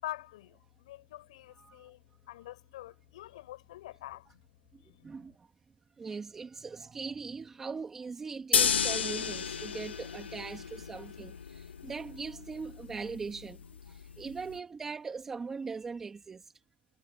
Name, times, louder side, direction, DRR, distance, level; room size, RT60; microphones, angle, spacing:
voice 1, 0.0-4.4 4.9-5.3, left 15 dB, 30° left, 6.8 m, -46 dB
voice 2, 5.0-5.5 6.0-13.6 13.8-16.5, right 5 dB, 5° right, 2.5 m, -40 dB
sound 1, 8.5-14.6, left 7 dB, 65° left, 2.3 m, -33 dB
hypercardioid pair, 170°, 6 cm